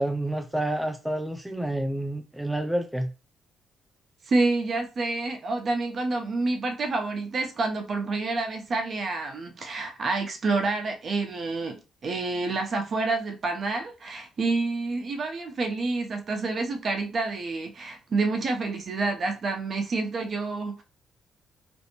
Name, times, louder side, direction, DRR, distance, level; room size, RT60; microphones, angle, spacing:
voice 1, 0.0-3.1, right 1 dB, 5° right, 0.3 m, -29 dB
voice 2, 4.3-20.8, right 3 dB, 45° right, 0.6 m, -28 dB
2.5 x 2.0 x 2.8 m
cardioid pair, 90°, 0 cm